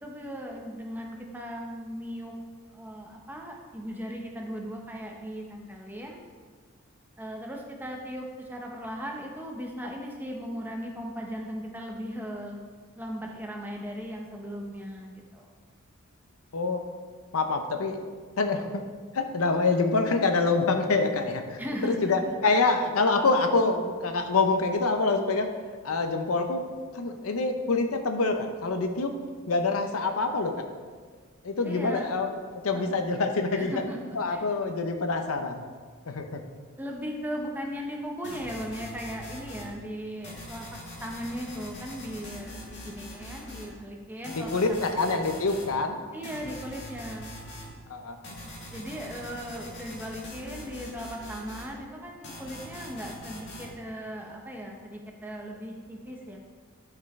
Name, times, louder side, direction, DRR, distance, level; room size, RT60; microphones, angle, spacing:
voice 1, 0.0-2.3 2.7-6.2 7.2-12.6 12.9-15.5 18.6-18.7 21.6-22.1 22.5-22.7 31.6-32.1 32.7-33.2 33.5-34.5 36.8-40.6 41.0-45.0 46.1-47.3 48.7-56.4, equal, 10° right, 0 dB, 0.8 m, -38 dB
voice 2, 17.3-18.0 18.4-18.7 19.1-25.5 25.8-26.6 26.9-29.1 29.5-30.6 31.4-33.7 34.2-35.6 36.1-36.4 44.3-46.0 47.9-48.2, left 3 dB, 80° left, 6 dB, 0.7 m, -26 dB
sound 1, 38.2-39.7 40.2-43.7 44.2-45.7 46.2-47.7 48.2-51.7 52.2-53.7, equal, 55° left, 1.7 m, -42 dB
11.5 x 5.0 x 3.2 m, 1.5 s
head